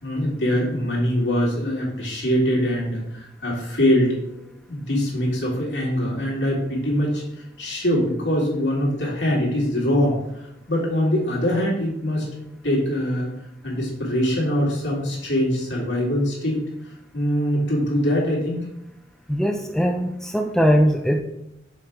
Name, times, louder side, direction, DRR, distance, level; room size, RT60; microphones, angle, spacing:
voice 1, 0.0-4.4 4.7-7.2 7.6-12.2 12.6-13.3 13.6-16.6 17.1-18.6, equal, 90° left, -4 dB, 2.3 m, -23 dB
voice 2, 19.3-21.2, equal, 5° left, 4 dB, 0.3 m, -20 dB
6.3 x 4.5 x 3.6 m, 0.82 s
head